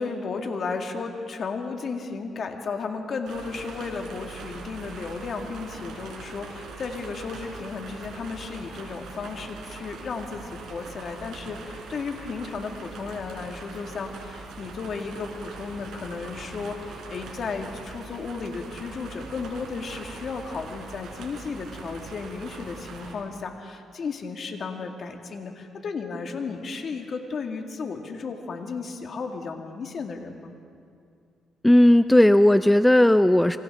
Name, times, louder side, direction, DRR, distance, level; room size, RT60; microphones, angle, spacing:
voice 1, 0.0-30.5, left 4 dB, 55° left, 3 dB, 2.1 m, -34 dB
sound 1, 3.3-23.1, right 4 dB, 75° right, 4.4 m, -42 dB
voice 2, 31.6-33.6, left 1 dB, 5° left, 11 dB, 0.5 m, -16 dB
29.0 x 24.5 x 3.7 m, 2.4 s
cardioid pair, 90°, 0 cm